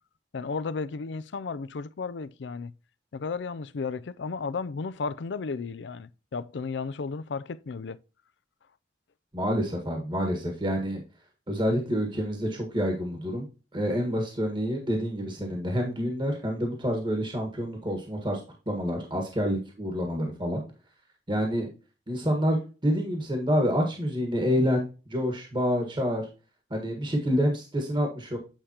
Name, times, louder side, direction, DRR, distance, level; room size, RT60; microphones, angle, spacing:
voice 1, 0.3-2.7 3.1-8.0, left 4 dB, 75° left, 0.5 m, -34 dB
voice 2, 9.3-11.0 11.5-13.5 13.7-18.4 18.7-20.6 21.3-21.7 22.1-26.2 26.7-28.4, equal, 25° right, 1.6 m, -27 dB
9.0 x 5.0 x 2.9 m
head